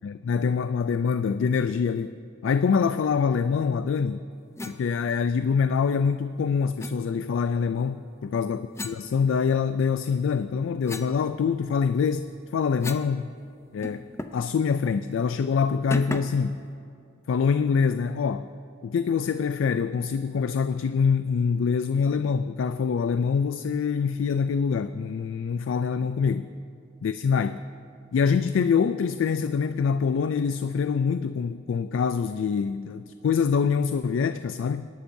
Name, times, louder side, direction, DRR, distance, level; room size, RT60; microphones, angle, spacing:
voice 1, 0.0-2.2 2.4-4.2 4.6-13.3 13.7-16.6 17.3-18.5 18.8-26.5 27.0-27.6 28.1-34.9, left 6 dB, 80° left, 11 dB, 0.3 m, -25 dB
sound 1, 4.6-4.8 6.8-7.0 8.7-9.8 10.3-13.2 13.4-13.5 13.8-14.5 14.8-15.0 15.9-16.5, left 2 dB, 15° left, 0.5 m, -37 dB
25.5 x 11.5 x 2.7 m, 2.4 s
head